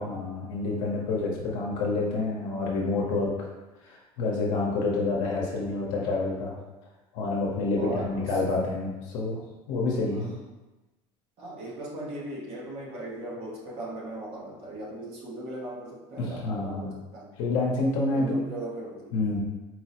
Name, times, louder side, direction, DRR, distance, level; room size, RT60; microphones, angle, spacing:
voice 1, 0.0-3.5 3.8-6.6 7.1-9.4 9.7-10.3 16.2-16.9 17.4-18.4 19.1-19.4, left 3 dB, 75° left, -3 dB, 0.7 m, -28 dB
voice 2, 7.8-8.3 10.1-10.2 11.4-17.3 18.1-19.1, right 1 dB, 55° right, -3 dB, 0.8 m, -38 dB
4.2 x 2.0 x 2.8 m, 1.1 s
cardioid pair, 125°, 12 cm